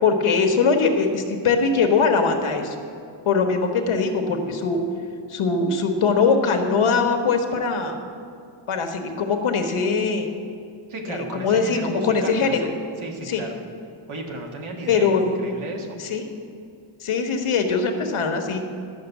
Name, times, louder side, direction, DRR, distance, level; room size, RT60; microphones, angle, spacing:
voice 1, 0.0-2.7 3.2-4.8 5.3-8.0 8.7-10.3 11.1-12.6 13.3-13.5 14.9-15.4 16.0-16.3 17.0-18.6, left 5 dB, 85° left, 4 dB, 1.4 m, -21 dB
voice 2, 10.9-12.7 13.0-13.6 14.1-16.0, right 2 dB, 80° right, 1 dB, 1.8 m, -34 dB
12.0 x 6.3 x 8.0 m, 2.4 s
wide cardioid pair, 155°, 49 cm